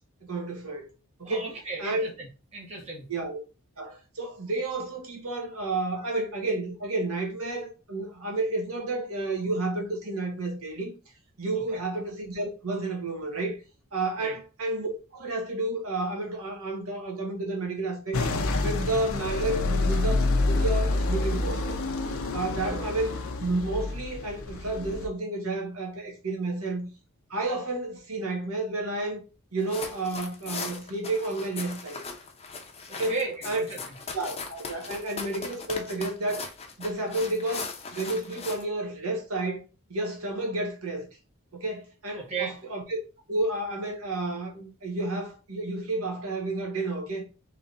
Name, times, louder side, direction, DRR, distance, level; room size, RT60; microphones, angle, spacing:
voice 1, 0.2-0.9 1.2-1.5 1.8-2.0 3.1-3.4 3.8-10.9 11.4-13.6 13.9-18.2 18.5-21.7 22.3-26.9 27.3-29.2 29.5-32.0 33.0-33.2 33.4-33.6 34.1-36.5 36.8-39.6 39.9-41.1 41.5-43.0 43.3-47.2, right 2 dB, 75° right, 1.5 m, -31 dB
voice 2, 1.2-3.0 11.5-11.8 14.2-14.3 32.9-33.8 42.1-42.5, right 4 dB, 30° right, 1.7 m, -35 dB
sound 1, 18.1-25.1, left 2 dB, 70° left, 0.7 m, -28 dB
sound 2, 29.6-38.6, left 4 dB, 25° left, 0.7 m, -39 dB
3.7 x 3.2 x 3.9 m
head